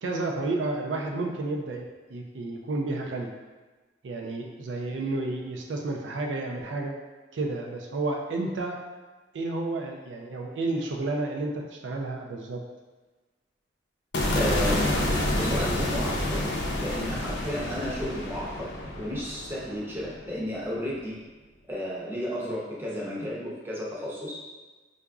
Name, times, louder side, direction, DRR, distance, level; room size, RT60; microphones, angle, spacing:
voice 1, 0.0-3.3 4.0-6.9 7.3-8.8 9.3-12.6, right 2 dB, 80° right, 1 dB, 0.4 m, -31 dB
sound 1, 14.1-20.4, left 1 dB, 75° left, 0.6 m, -28 dB
voice 2, 14.3-15.0 15.3-16.5 16.8-18.7 19.0-21.2 21.7-24.4, equal, 15° right, -6 dB, 0.7 m, -33 dB
4.7 x 2.5 x 2.3 m, 1.3 s
head